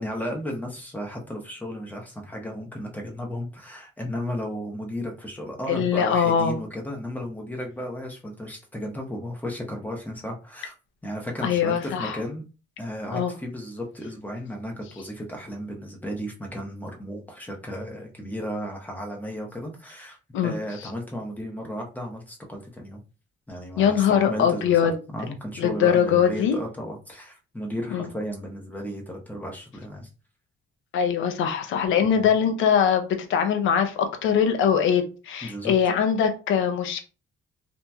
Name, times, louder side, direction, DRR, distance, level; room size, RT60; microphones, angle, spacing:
voice 1, 0.0-10.7 11.0-12.4 12.8-20.2 20.4-23.0 23.5-30.1 32.0-32.1 35.4-35.9, equal, 10° left, 0.9 m, -34 dB
voice 2, 5.7-6.6 11.4-12.2 13.1-13.3 20.3-20.5 20.8-20.9 23.8-24.9 25.6-26.6 27.9-28.1 30.9-37.0, left 8 dB, 80° left, 0.6 m, -22 dB
2.8 x 2.5 x 2.2 m
cardioid pair, 90°, 20 cm